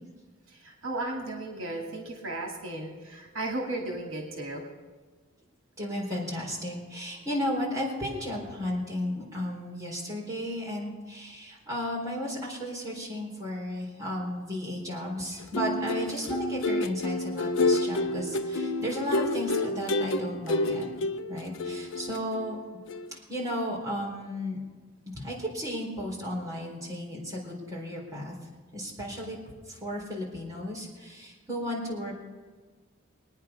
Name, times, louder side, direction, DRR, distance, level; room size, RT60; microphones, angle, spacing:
voice 1, 0.5-4.6, right 2 dB, 70° right, 1 dB, 2.4 m, -35 dB
voice 2, 5.8-20.9 21.3-22.6 23.1-24.6 25.1-28.3 28.7-29.4 29.7-32.1, equal, 15° right, -4 dB, 4.1 m, -34 dB
sound 1, 15.4-22.6 22.9-23.1, left 2 dB, 65° left, 0.7 m, -29 dB
22.5 x 9.8 x 5.7 m, 1.4 s
head